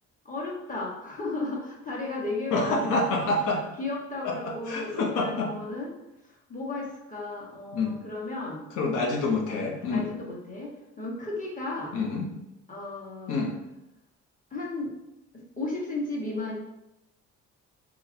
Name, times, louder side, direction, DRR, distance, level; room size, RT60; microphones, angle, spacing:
voice 1, 0.2-3.3 3.8-5.9 6.5-8.6 9.9-10.7 11.0-11.9 12.7-13.4 14.5-14.9 15.3-16.6, left 2 dB, 25° left, -3 dB, 1.1 m, -34 dB
voice 2, 2.5-3.6 4.2-5.5 7.7-8.0 8.8-10.1 11.9-12.3 13.3-13.5, left 3 dB, 85° left, -1 dB, 0.7 m, -27 dB
3.8 x 3.0 x 2.6 m, 0.92 s
cardioid pair, 90°, 30 cm